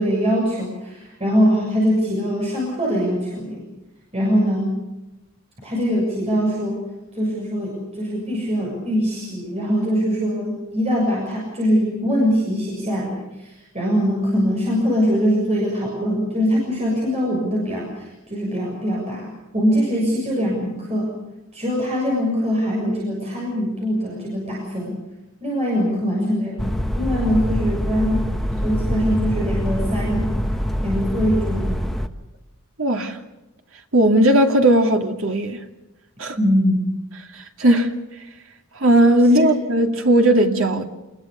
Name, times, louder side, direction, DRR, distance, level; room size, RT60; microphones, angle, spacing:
voice 1, 0.0-3.7 4.1-4.7 5.6-6.8 7.1-13.1 13.4-21.1 21.5-25.0 25.4-28.4 28.6-30.3 30.8-31.8 36.4-36.9 39.3-39.5, equal, 30° right, 7.0 m, -22 dB
sound 1, 26.6-32.1, equal, ahead, 1.1 m, -24 dB
voice 2, 32.8-33.2 33.9-35.6 36.2-36.4 37.6-37.9 38.8-40.8, right 1 dB, 70° right, 2.5 m, -16 dB
27.5 x 20.5 x 6.8 m
head